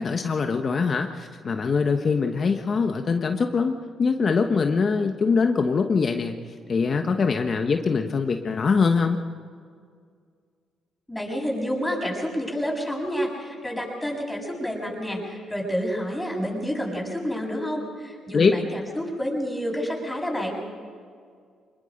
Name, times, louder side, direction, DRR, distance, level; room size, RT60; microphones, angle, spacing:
voice 1, 0.0-6.4 6.7-9.2 18.3-18.5, left 5 dB, 45° left, 5 dB, 1.1 m, -23 dB
voice 2, 11.1-20.6, equal, 5° left, -2 dB, 7.4 m, -29 dB
26.0 x 21.0 x 5.3 m, 2.1 s
cardioid pair, 90°, 0 cm